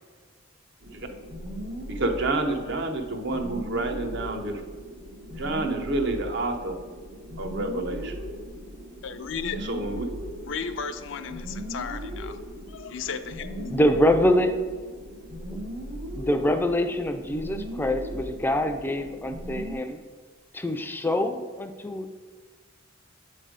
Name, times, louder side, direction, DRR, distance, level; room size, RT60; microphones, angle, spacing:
sound 1, 0.8-19.7, equal, 85° right, 1.4 m, -38 dB
voice 1, 1.9-4.6 5.2-6.8 7.4-8.1 9.5-10.3, right 2 dB, 65° right, 5 dB, 0.7 m, -29 dB
voice 2, 9.0-9.6 10.4-12.4 12.7-14.0, left 6 dB, 70° left, 9 dB, 0.4 m, -34 dB
voice 3, 13.7-14.5 15.5-15.6 16.2-20.0 20.5-22.1, left 1 dB, 10° left, 7 dB, 0.4 m, -25 dB
7.9 x 3.3 x 5.0 m, 1.5 s
head